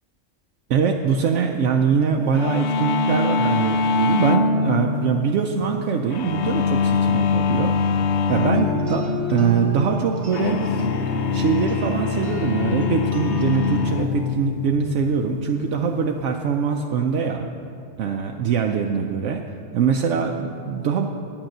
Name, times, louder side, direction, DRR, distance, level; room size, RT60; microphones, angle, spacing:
voice 1, 0.7-7.8 8.3-10.9 11.3-17.5 18.0-19.5 19.7-21.1, right 6 dB, 75° right, 2 dB, 0.9 m, -23 dB
sound 1, 2.3-16.8, left 5 dB, 70° left, 0.9 m, -24 dB
sound 2, 8.3-13.9, right 1 dB, 25° right, 1.3 m, -30 dB
9.6 x 8.9 x 6.5 m, 2.6 s
omnidirectional pair, 1.3 m